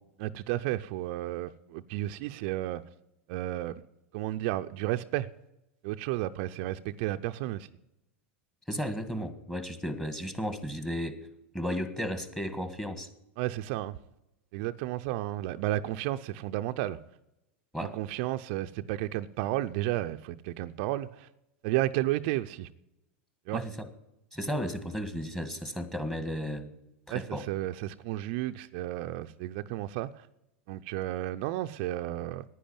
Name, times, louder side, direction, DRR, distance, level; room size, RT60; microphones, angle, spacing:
voice 1, 0.2-2.8 3.3-3.7 4.1-5.3 5.8-7.7 13.4-13.9 14.5-17.0 17.8-21.3 21.6-22.7 23.5-23.6 27.1-30.3 30.7-32.4, right 15 dB, 55° right, 0.5 m, -32 dB
voice 2, 8.7-11.2 11.5-13.1 17.7-18.0 23.5-23.8 24.3-26.7 27.1-27.4, equal, 5° left, 1.6 m, -34 dB
10.5 x 9.9 x 8.7 m
hypercardioid pair, 110°, 7 cm